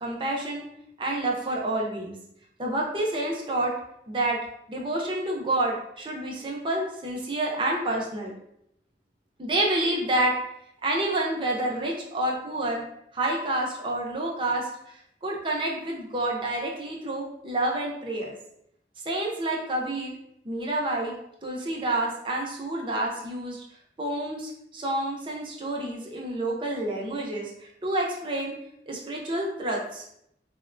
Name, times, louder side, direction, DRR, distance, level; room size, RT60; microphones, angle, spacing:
voice 1, 0.0-0.7 1.0-2.1 2.6-3.7 4.1-4.4 4.7-8.3 9.4-10.3 10.8-12.8 13.1-15.0 15.2-18.3 19.0-20.2 20.4-21.2 21.4-23.6 24.0-28.5 28.9-30.0, right 1 dB, 30° right, -1 dB, 0.5 m, -28 dB
3.7 x 2.1 x 2.5 m, 0.76 s
head